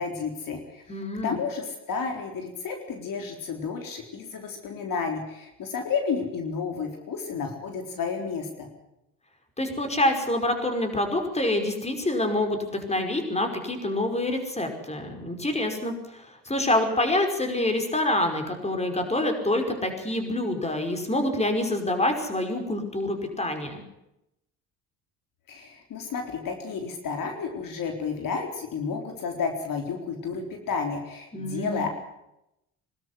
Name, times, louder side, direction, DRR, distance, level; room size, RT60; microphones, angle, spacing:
voice 1, 0.0-0.8 1.2-8.7 25.5-31.9, left 5 dB, 60° left, 4 dB, 4.1 m, -31 dB
voice 2, 0.9-1.4 9.6-23.8 31.3-31.8, left 1 dB, 15° left, 5 dB, 5.2 m, -26 dB
23.0 x 13.0 x 9.8 m, 0.86 s
supercardioid pair, 75°, 37 cm